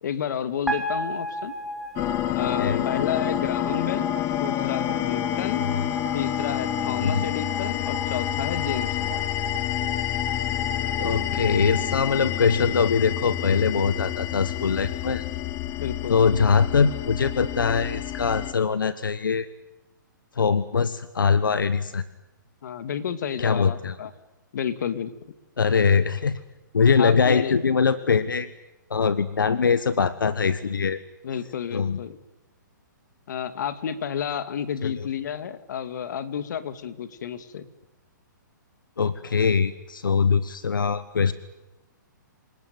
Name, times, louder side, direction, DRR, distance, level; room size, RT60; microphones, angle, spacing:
voice 1, 0.0-1.5 2.3-4.1 4.4-5.6 6.1-9.2 15.8-16.2 22.6-24.1 24.5-25.1 27.0-27.5 31.2-32.2 33.3-37.7, left 8 dB, 65° left, 11 dB, 2.4 m, -31 dB
sound 1, 0.7-12.9, equal, ahead, 3.0 m, -34 dB
sound 2, 2.0-18.5, left 14 dB, 25° left, 0.9 m, -29 dB
voice 2, 11.0-15.2 16.1-19.5 20.4-22.0 23.4-24.0 25.6-26.4 26.7-28.5 28.9-31.0 31.7-32.0 34.8-35.1 39.0-41.3, left 5 dB, 90° left, 14 dB, 1.3 m, -22 dB
27.5 x 19.5 x 9.4 m, 1.0 s
hypercardioid pair, 140°, 11 cm